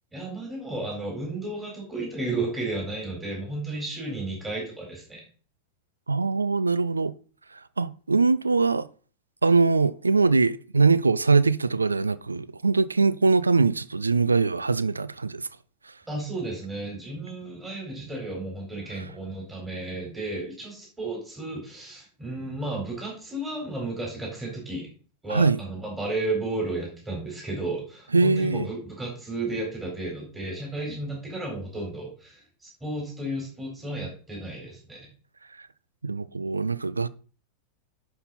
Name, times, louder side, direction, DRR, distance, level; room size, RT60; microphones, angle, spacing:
voice 1, 0.1-5.2 16.1-24.9 25.2-35.1, right 2 dB, 10° right, 4.1 m, -33 dB
voice 2, 6.1-7.1 7.5-8.9 9.4-15.5 19.0-19.1 25.3-25.6 28.1-28.7 36.0-37.1, right 4 dB, 80° right, 0.4 m, -22 dB
11.0 x 5.8 x 4.1 m
figure-of-eight pair, 90°, 0 cm